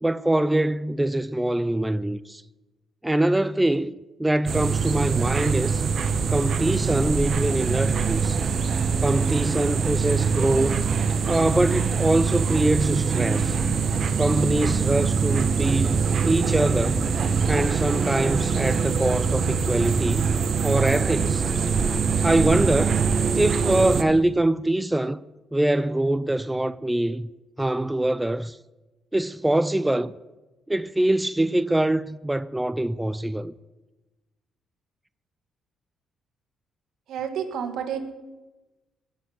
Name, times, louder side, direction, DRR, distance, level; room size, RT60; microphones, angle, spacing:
voice 1, 0.0-2.4 3.0-3.9 4.2-5.8 6.3-8.4 9.0-10.9 11.3-13.6 14.2-17.1 17.5-20.3 20.6-21.5 22.2-23.1 23.3-25.2 25.5-27.3 27.6-28.6 29.1-30.1 30.7-33.5, right 1 dB, 10° right, 0.4 m, -24 dB
sound 1, 4.5-24.0, right 5 dB, 50° right, 1.1 m, -23 dB
voice 2, 37.1-38.0, right 8 dB, 75° right, 2.0 m, -29 dB
19.5 x 6.9 x 9.4 m
cardioid pair, 90°, 0 cm